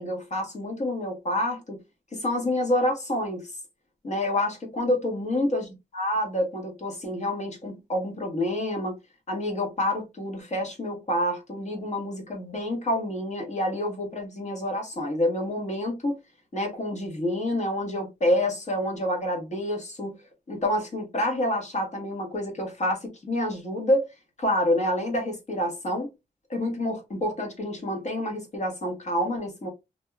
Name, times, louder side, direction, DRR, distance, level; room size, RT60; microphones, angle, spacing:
voice 1, 0.0-1.8 2.2-3.5 4.0-5.6 5.9-8.9 9.3-16.2 16.5-20.1 20.5-24.1 24.4-26.1 26.5-29.7, left 1 dB, 45° left, 1.2 m, -28 dB
2.9 x 2.7 x 2.2 m
wide cardioid pair, 115°, 17 cm